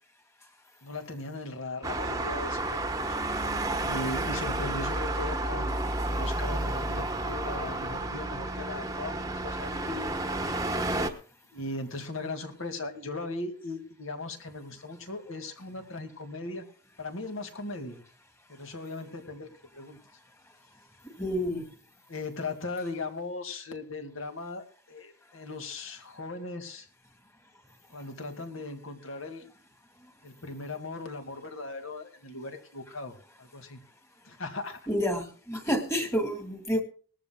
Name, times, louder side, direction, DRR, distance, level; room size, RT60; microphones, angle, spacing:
voice 1, 0.8-3.2 3.8-10.1 11.5-16.6 17.0-18.0 18.5-20.0 22.1-26.9 27.9-29.4 30.2-33.1 33.4-33.8 34.3-34.8, left 2 dB, 65° left, 6 dB, 2.2 m, -38 dB
Traffic noise roadway noise, 1.8-11.1, right 2 dB, 15° right, 1.1 m, -31 dB
voice 2, 21.2-21.7 34.9-36.8, equal, 10° left, 6 dB, 2.0 m, -29 dB
20.0 x 14.0 x 2.3 m, 0.39 s
head